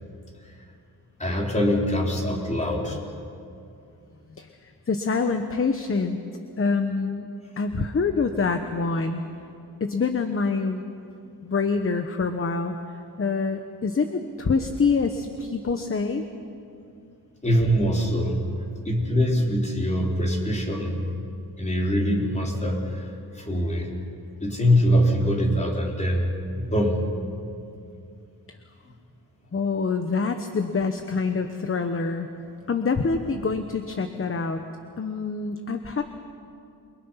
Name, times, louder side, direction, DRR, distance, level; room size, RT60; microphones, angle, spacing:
voice 1, 1.2-3.0 17.4-18.4 18.8-21.0 21.6-23.9 24.4-26.3 26.6-27.0, equal, 20° left, -2 dB, 4.3 m, -23 dB
voice 2, 4.3-6.2 6.6-7.3 7.6-9.2 9.8-10.8 11.4-12.7 13.2-16.3 28.5-28.6 29.5-32.3 32.7-34.6 35.0-36.0, left 4 dB, 35° left, 7 dB, 1.2 m, -26 dB
29.0 x 23.5 x 5.9 m, 2.5 s
wide cardioid pair, 110°, 37 cm